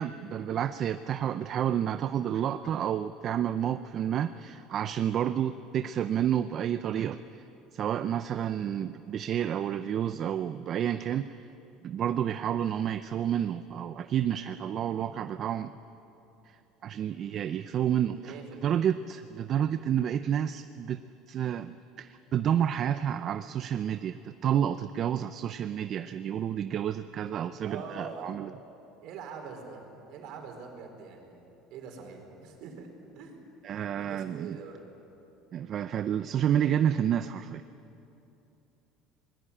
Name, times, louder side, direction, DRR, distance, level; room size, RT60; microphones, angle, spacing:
voice 1, 0.0-7.2 7.7-11.5 11.8-15.7 16.8-18.3 18.6-21.0 21.3-28.5 33.6-34.6 35.5-37.6, right 9 dB, 40° right, 11 dB, 0.5 m, -30 dB
voice 2, 17.9-18.8 27.6-28.3 29.0-29.8 30.1-31.4 31.7-33.5 33.8-34.8, right 5 dB, 60° right, 3 dB, 4.7 m, -44 dB
24.0 x 20.0 x 8.8 m, 3.0 s
cardioid pair, 140°, 0 cm